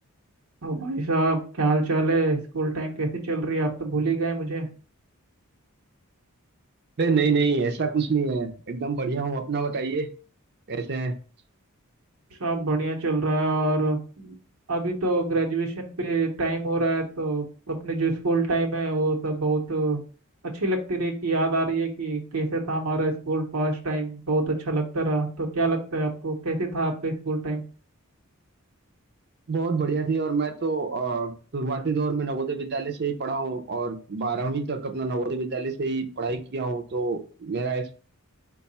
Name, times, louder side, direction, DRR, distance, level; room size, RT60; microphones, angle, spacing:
voice 1, 0.6-4.7 12.4-14.3 14.7-20.0 20.5-27.6, right 2 dB, 85° right, 1 dB, 1.0 m, -26 dB
voice 2, 7.0-10.1 10.7-11.2 29.5-38.0, right 4 dB, 50° right, 6 dB, 0.6 m, -27 dB
4.6 x 2.3 x 4.1 m, 0.38 s
head